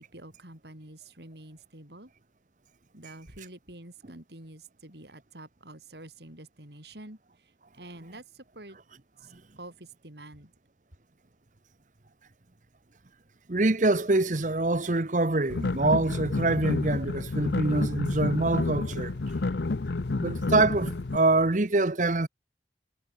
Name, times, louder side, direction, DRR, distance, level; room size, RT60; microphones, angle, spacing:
voice 1, 0.0-2.1 2.9-8.8 9.2-10.5, right 1 dB, 70° right, 5.5 m, -48 dB
voice 2, 13.5-19.1 20.2-22.3, right 2 dB, 45° right, 1.0 m, -25 dB
sound 1, 15.5-21.2, left 3 dB, 70° left, 0.7 m, -30 dB
head